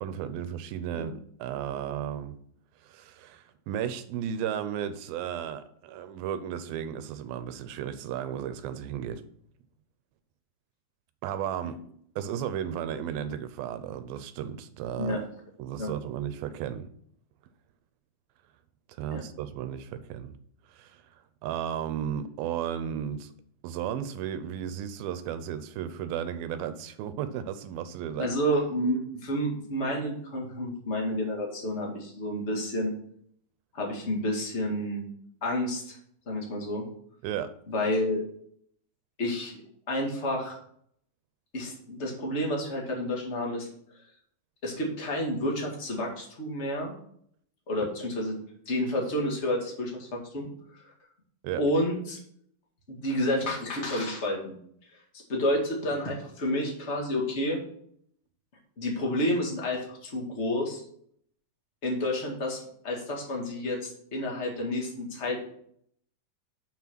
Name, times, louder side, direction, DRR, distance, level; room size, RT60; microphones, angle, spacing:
voice 1, 0.0-2.4 2.8-9.2 11.2-11.8 12.2-15.2 15.6-16.9 18.9-20.3 20.7-21.1 21.4-23.3 23.6-28.4 37.2-37.5 51.4-51.6, right 9 dB, 80° right, 11 dB, 2.4 m, -34 dB
voice 2, 28.2-32.9 33.7-35.0 35.4-36.0 36.2-36.8 37.7-38.2 39.2-39.6 39.9-40.6 41.5-43.7 44.6-46.9 47.7-48.4 48.6-50.8 51.6-52.2 52.9-54.6 55.3-57.6 58.8-60.8 61.8-65.6, left 1 dB, 25° left, -1 dB, 1.5 m, -30 dB
7.0 x 6.0 x 6.0 m, 0.65 s
omnidirectional pair, 4.3 m